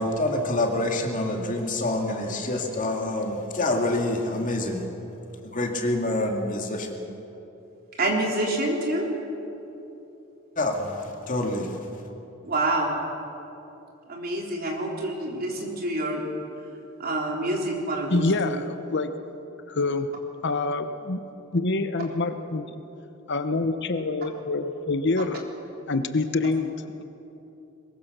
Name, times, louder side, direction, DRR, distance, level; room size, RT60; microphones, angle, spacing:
voice 1, 0.0-4.8 5.5-7.0 10.6-11.7, left 1 dB, 40° left, 2 dB, 2.5 m, -27 dB
voice 2, 8.0-9.1 12.4-13.0 14.1-16.3 17.0-18.6, right 1 dB, 45° right, 0 dB, 3.6 m, -27 dB
voice 3, 18.1-19.1 19.7-20.1 20.4-21.2 21.5-22.8 23.3-25.4 25.9-27.0, left 3 dB, 60° left, 9 dB, 1.0 m, -26 dB
22.0 x 21.5 x 6.8 m, 3.0 s
head